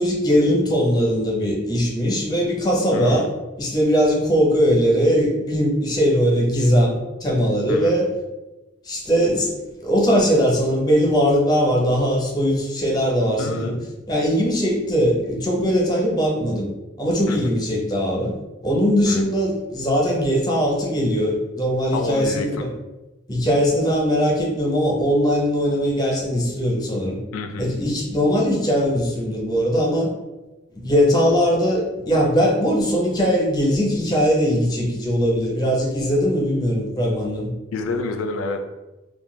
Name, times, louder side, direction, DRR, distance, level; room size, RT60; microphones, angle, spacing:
voice 1, 0.0-3.3 3.6-7.0 7.2-8.1 8.8-9.5 9.8-13.8 14.1-16.7 17.0-18.3 18.6-22.7 23.3-27.2 27.6-30.1 30.8-37.5, equal, 20° left, -2 dB, 0.6 m, -20 dB
voice 2, 2.9-3.3 7.7-7.9 13.4-13.8 17.3-17.5 19.1-19.3 21.9-22.6 27.3-27.7 37.7-38.6, left 3 dB, 90° left, 6 dB, 0.3 m, -28 dB
2.5 x 2.2 x 3.1 m, 1.1 s
head